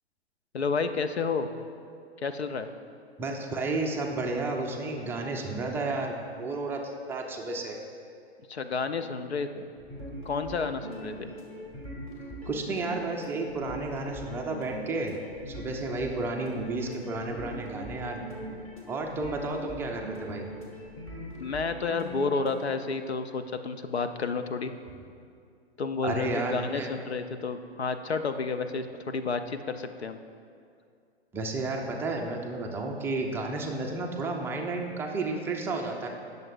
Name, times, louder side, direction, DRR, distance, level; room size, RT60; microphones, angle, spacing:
voice 1, 0.5-1.5 2.2-2.7 8.5-9.7 10.2-11.3 21.4-24.7 25.8-30.2, left 4 dB, 80° left, 9 dB, 0.7 m, -31 dB
voice 2, 3.2-7.8 12.5-15.2 15.5-18.2 18.9-20.5 26.0-26.9 31.3-36.1, right 2 dB, 5° right, 1 dB, 0.4 m, -32 dB
sound 1, 9.8-22.7, equal, 20° left, 1.9 m, -41 dB
19.0 x 6.7 x 2.5 m, 2.3 s
figure-of-eight pair, 115°, 32 cm